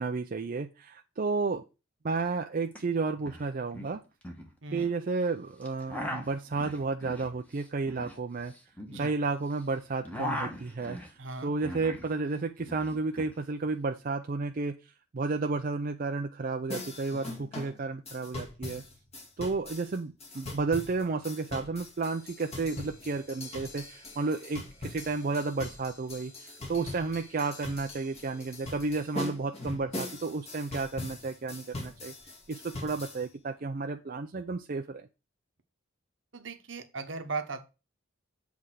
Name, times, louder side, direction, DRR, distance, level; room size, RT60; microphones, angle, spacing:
voice 1, 0.0-1.6 2.0-4.0 4.7-8.5 8.9-11.0 11.4-14.8 15.1-18.8 19.4-32.1 32.5-35.1, right 3 dB, 45° right, 0.5 m, -32 dB
sound 1, 2.7-2.8 3.1-3.4 3.7-4.9 5.6-9.6 9.9-12.1 12.4-13.3, left 1 dB, 10° left, 1.3 m, -39 dB
voice 2, 11.2-11.5 36.3-37.7, right 4 dB, 65° right, 1.0 m, -38 dB
sound 2, 16.7-33.2, left 2 dB, 30° left, 1.9 m, -42 dB
7.7 x 3.5 x 6.2 m
head